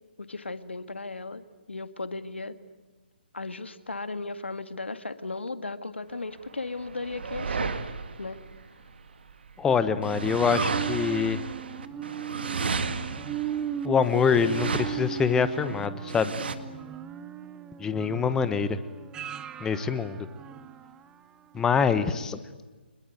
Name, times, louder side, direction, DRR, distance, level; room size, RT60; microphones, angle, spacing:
voice 1, 0.2-2.6 3.3-7.7 8.2-8.4, left 3 dB, 85° left, 11 dB, 1.9 m, -36 dB
sound 1, 6.4-9.5 10.0-16.6, right 5 dB, 65° right, 2.1 m, -33 dB
voice 2, 9.6-11.4 13.8-16.3 17.8-18.8 19.6-20.2 21.5-22.4, left 6 dB, 10° left, 12 dB, 1.1 m, -25 dB
sound 2, 9.7-21.1 21.6-21.7, right 9 dB, 15° right, 0.8 m, -38 dB
26.0 x 21.5 x 9.2 m, 1.3 s
figure-of-eight pair, 145°, 6 cm